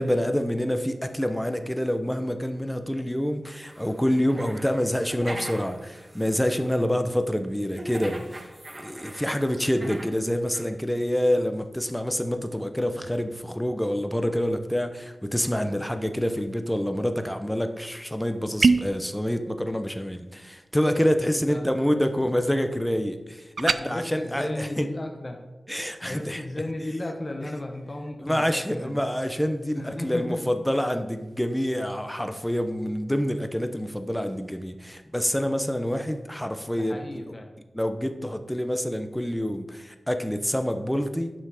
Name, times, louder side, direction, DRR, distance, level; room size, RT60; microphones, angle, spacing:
voice 1, 0.0-24.9 25.7-26.4 28.2-37.0 37.7-41.3, equal, 5° left, 8 dB, 0.7 m, -27 dB
sound 1, 3.6-6.8 7.7-10.2 10.5-10.7, right 1 dB, 30° right, 1.3 m, -41 dB
sound 2, 18.6-19.0 23.6-23.8, right 4 dB, 75° right, 0.3 m, -20 dB
voice 2, 21.5-22.0 23.7-25.4 26.0-29.0 29.7-30.4 36.7-37.5, left 1 dB, 30° left, 2 dB, 1.0 m, -34 dB
9.4 x 5.7 x 4.9 m, 1.1 s
wide cardioid pair, 75°, 0 cm